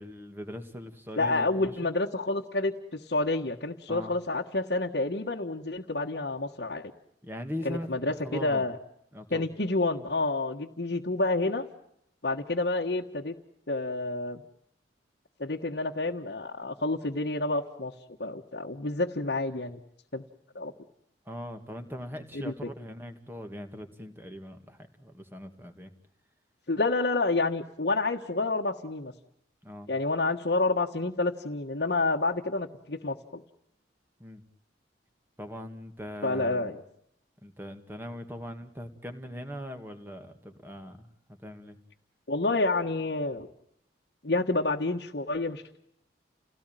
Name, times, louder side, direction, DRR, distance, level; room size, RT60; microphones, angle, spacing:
voice 1, 0.0-1.7 3.9-4.1 7.2-8.7 9.1-9.5 21.3-25.9 29.6-29.9 34.2-34.4 35.4-36.7 37.4-41.1 41.4-41.8, equal, 10° right, 6 dB, 2.2 m, -40 dB
voice 2, 1.1-6.9 7.6-8.8 9.3-11.6 12.2-13.3 13.7-14.4 15.4-17.9 18.2-19.8 20.1-20.2 20.5-20.7 22.3-22.7 26.7-29.1 29.9-33.4 36.2-36.8 42.3-43.5 44.2-45.8, left 2 dB, 60° left, -3 dB, 1.5 m, -29 dB
30.0 x 17.5 x 9.2 m, 0.74 s
head